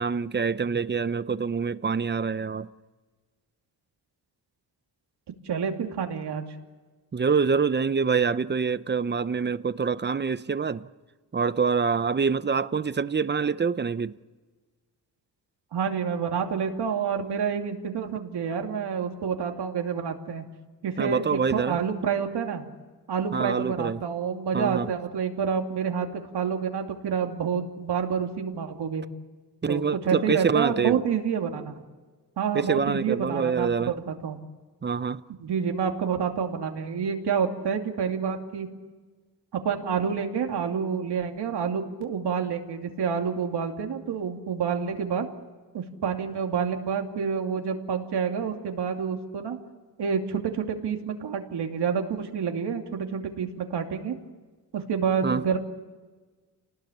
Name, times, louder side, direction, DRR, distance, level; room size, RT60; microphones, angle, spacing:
voice 1, 0.0-2.7 7.1-10.9 11.3-14.1 21.0-21.8 23.3-24.0 24.5-24.9 29.6-31.0 32.5-33.9 34.8-35.2 55.2-55.4, right 5 dB, 25° right, 0.7 m, -25 dB
voice 2, 5.4-6.4 15.7-20.4 20.8-22.6 23.1-29.0 29.7-31.7 32.4-34.4 35.4-38.7 39.6-45.3 45.7-49.6 50.0-54.2 54.7-55.6, right 6 dB, 85° right, 2.8 m, -28 dB
29.5 x 19.0 x 8.6 m
wide cardioid pair, 115°, 39 cm